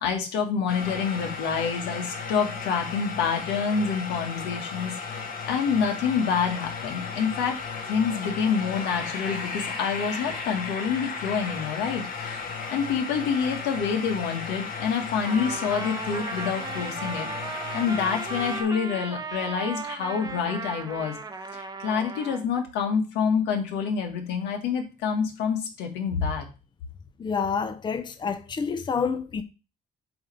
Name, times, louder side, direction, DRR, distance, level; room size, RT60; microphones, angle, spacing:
voice 1, 0.0-5.2 5.5-7.6 7.8-12.4 12.7-17.3 17.7-21.2 21.5-26.5, left 6 dB, 85° left, 1.7 m, -27 dB
sound 1, 0.7-18.6, left 5 dB, 55° left, 1.6 m, -35 dB
Trumpet, 15.2-22.5, right 4 dB, 25° right, 0.8 m, -36 dB
voice 2, 27.2-29.4, left 5 dB, 25° left, 0.7 m, -28 dB
7.8 x 3.3 x 5.4 m
cardioid pair, 110°, 17 cm